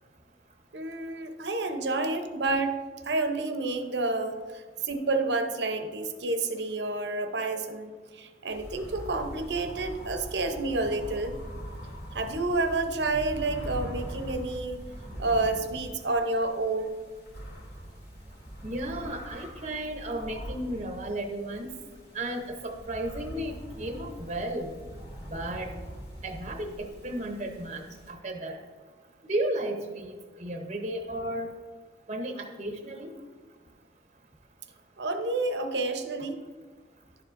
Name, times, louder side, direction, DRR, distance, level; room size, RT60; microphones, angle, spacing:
voice 1, 0.7-2.8 3.0-11.3 12.1-14.8 15.2-16.9 35.0-36.4, right 2 dB, 75° right, 7 dB, 0.8 m, -29 dB
sound 1, 8.5-28.1, equal, 70° left, 2.5 m, -42 dB
voice 2, 18.6-21.7 22.1-24.7 25.3-25.7 26.2-27.8 28.1-28.6 29.3-31.5 32.1-33.1, right 1 dB, 40° right, 3 dB, 0.7 m, -34 dB
11.0 x 7.2 x 2.5 m, 1.4 s
head